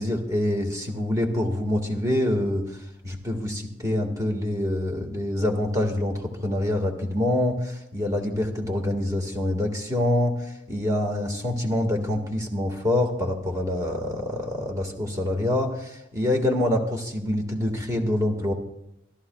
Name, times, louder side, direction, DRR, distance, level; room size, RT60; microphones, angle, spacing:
voice 1, 0.0-18.5, left 1 dB, 20° right, 2 dB, 1.8 m, -26 dB
27.5 x 13.0 x 2.3 m, 0.79 s
head